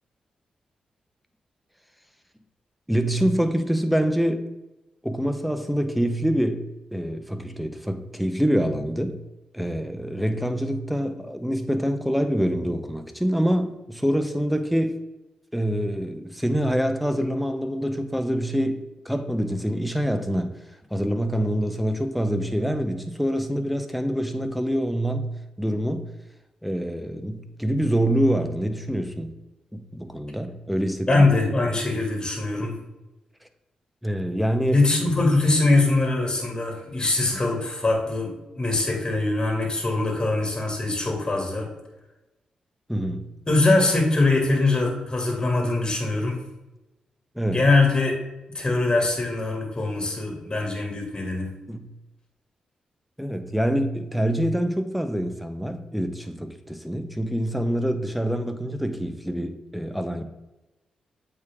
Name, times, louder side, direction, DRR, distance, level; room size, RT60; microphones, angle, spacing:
voice 1, 2.9-4.5 5.0-9.2 9.5-15.0 15.5-18.8 19.0-20.6 20.9-25.3 25.6-26.1 26.6-29.3 29.7-31.3 34.0-34.8 37.2-37.3 42.9-43.3 47.3-47.6 51.7-51.9 53.2-60.2, equal, ahead, 8 dB, 1.0 m, -25 dB
voice 2, 31.1-32.8 34.7-41.7 43.5-46.4 47.5-48.2 48.5-51.5, left 2 dB, 25° left, 1 dB, 2.4 m, -22 dB
8.0 x 5.0 x 3.6 m, 1.0 s
supercardioid pair, 50°, 3 cm